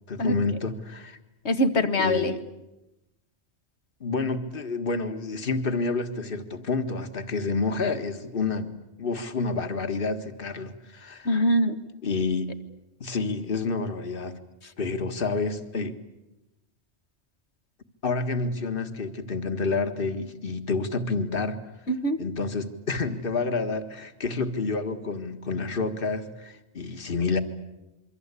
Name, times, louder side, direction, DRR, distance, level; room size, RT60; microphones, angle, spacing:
voice 1, 0.1-1.2 2.0-2.4 4.0-8.7 9.0-11.3 12.0-12.5 13.0-14.4 14.8-16.0 18.0-21.6 22.2-27.4, left 4 dB, 55° left, 7 dB, 1.9 m, -29 dB
voice 2, 1.4-2.3 11.3-11.8 21.9-22.3, equal, 85° left, 9 dB, 1.9 m, -23 dB
27.5 x 24.0 x 8.3 m, 0.95 s
omnidirectional pair, 1.1 m